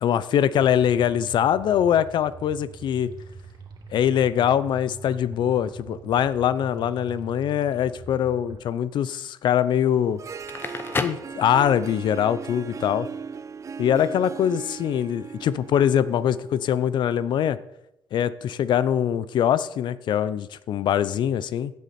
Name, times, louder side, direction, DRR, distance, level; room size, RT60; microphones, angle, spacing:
voice 1, 0.0-3.1 3.9-10.2 11.0-13.1 13.8-17.6 18.1-21.7, left 9 dB, 70° left, 16 dB, 0.6 m, -23 dB
sound 1, 0.6-8.6, right 4 dB, 65° right, 2.5 m, -43 dB
Harp, 10.0-17.1, right 5 dB, 40° right, 0.6 m, -38 dB
Crackle, 10.3-12.0, left 3 dB, 25° left, 0.9 m, -31 dB
15.5 x 8.4 x 4.3 m, 0.84 s
cardioid pair, 105°, 8 cm